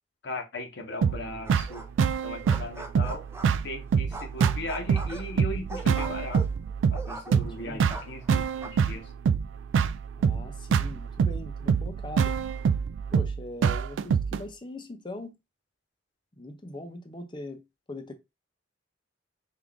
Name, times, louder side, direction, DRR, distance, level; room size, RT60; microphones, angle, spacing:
voice 1, 0.2-1.9 2.2-3.3 3.6-6.5 6.9-9.1, left 2 dB, 65° left, 0.9 m, -38 dB
sound 1, 1.0-14.4, right 6 dB, 80° right, 0.3 m, -26 dB
sound 2, 1.4-2.1 2.3-3.7 4.1-7.6 7.9-8.7, right 2 dB, 15° right, 0.5 m, -41 dB
voice 2, 7.3-7.8 10.2-12.4 13.1-15.3 16.4-18.1, left 1 dB, 25° left, 0.6 m, -41 dB
3.7 x 2.5 x 3.4 m
head